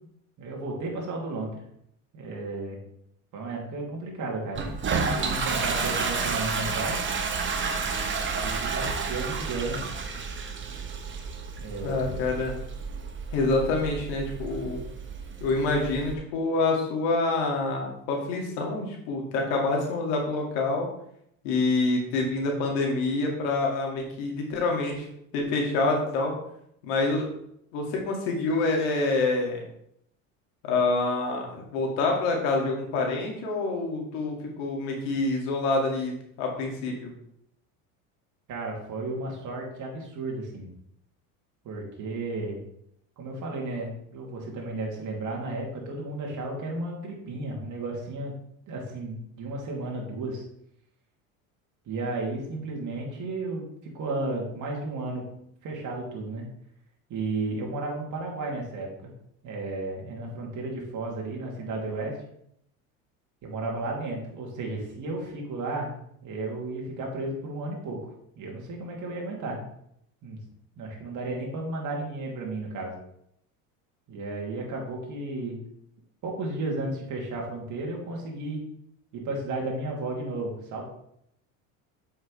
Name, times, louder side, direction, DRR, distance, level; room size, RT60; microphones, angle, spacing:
voice 1, 0.4-1.6 2.1-2.8 3.3-4.7 5.1-7.0 8.3-9.8 11.6-12.3 38.5-40.7 41.6-42.6 43.2-48.3 48.7-50.4 51.9-55.2 55.6-56.5 57.1-59.1 59.4-62.2 63.4-65.9 66.2-68.0 68.4-69.6 70.2-70.4 70.8-72.9 74.1-75.6 76.2-78.6 79.1-80.9, right 2 dB, 45° right, -1 dB, 2.5 m, -33 dB
Toilet flush, 4.5-16.1, right 5 dB, 30° right, 1.0 m, -31 dB
voice 2, 11.8-12.5 13.3-14.8 15.4-20.9 21.4-25.1 25.3-26.3 26.8-27.3 27.7-29.6 30.7-37.1, left 3 dB, 75° left, 0 dB, 2.2 m, -27 dB
7.2 x 5.8 x 3.2 m, 0.73 s
supercardioid pair, 100°, 40 cm